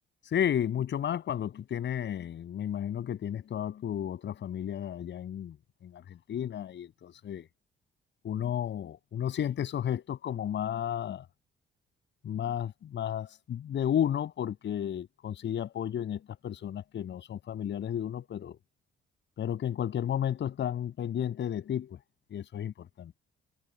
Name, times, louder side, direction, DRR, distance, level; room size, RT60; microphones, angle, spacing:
voice 1, 0.2-5.6 5.8-7.5 8.2-11.3 12.2-18.6 19.4-22.0 22.3-22.9, left 10 dB, 65° left, 7.3 m, -33 dB
cardioid pair, 90°, 20 cm